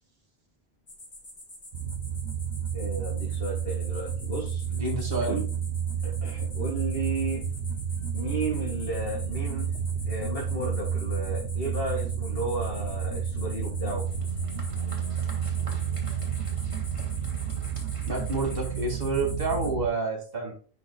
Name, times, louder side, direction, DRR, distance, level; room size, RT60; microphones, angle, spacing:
sound 1, 0.9-19.7, left 1 dB, 45° left, 2.6 m, -46 dB
sound 2, 1.7-19.9, right 7 dB, 80° right, 0.9 m, -31 dB
voice 1, 2.7-4.7 5.2-5.4 6.0-7.5 8.1-9.8 10.1-14.1, right 2 dB, 65° left, -2 dB, 2.1 m, -33 dB
voice 2, 4.7-5.4 18.1-20.5, right 2 dB, 60° right, 0 dB, 2.4 m, -29 dB
Applause, 14.0-19.5, right 1 dB, 30° right, 2.1 m, -49 dB
10.5 x 4.3 x 2.3 m, 0.41 s
omnidirectional pair, 1.1 m